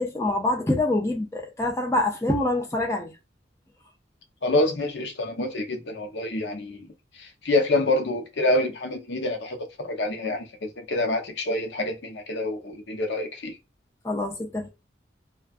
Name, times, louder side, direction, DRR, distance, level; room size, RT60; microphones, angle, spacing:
voice 1, 0.0-3.1 14.0-14.7, left 2 dB, 15° left, 0.5 m, -25 dB
voice 2, 4.4-6.9 7.2-13.6, left 2 dB, 75° left, 0.7 m, -27 dB
2.3 x 2.3 x 2.4 m
head